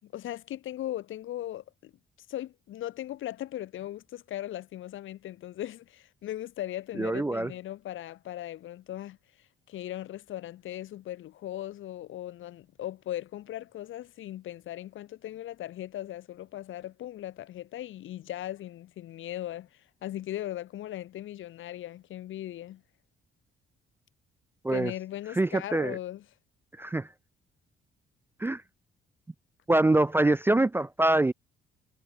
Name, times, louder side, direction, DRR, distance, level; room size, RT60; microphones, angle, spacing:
voice 1, 0.0-1.9 2.3-22.8 24.7-26.2, left 13 dB, 80° left, 3.9 m, -38 dB
voice 2, 7.0-7.5 24.6-24.9 25.4-26.0 26.8-27.1 28.4-28.6 29.7-31.3, right 2 dB, 10° right, 0.4 m, -24 dB
cardioid pair, 90°, 20 cm